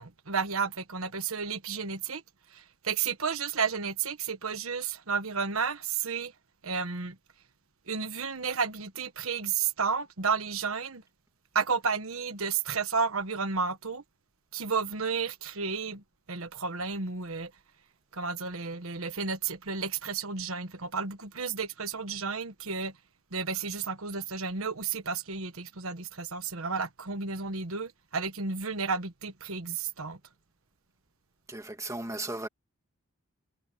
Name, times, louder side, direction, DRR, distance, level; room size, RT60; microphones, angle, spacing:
voice 1, 0.0-2.2 2.5-6.3 6.6-7.2 7.9-11.0 11.5-14.0 14.5-16.0 16.3-17.5 18.1-22.9 23.3-30.2, right 5 dB, 70° right, 1.4 m, -32 dB
voice 2, 31.5-32.5, right 2 dB, 15° right, 2.1 m, -36 dB
head